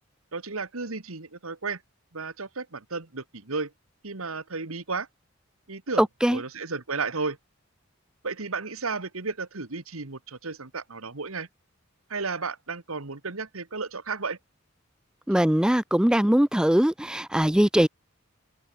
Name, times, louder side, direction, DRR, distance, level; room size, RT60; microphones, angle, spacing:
voice 1, 0.3-1.8 2.1-3.7 4.0-5.1 5.7-6.0 6.3-7.4 8.2-11.5 12.1-14.4, right 4 dB, 80° right, 1.8 m, -33 dB
voice 2, 6.0-6.4 15.3-17.9, equal, 5° right, 0.3 m, -21 dB
head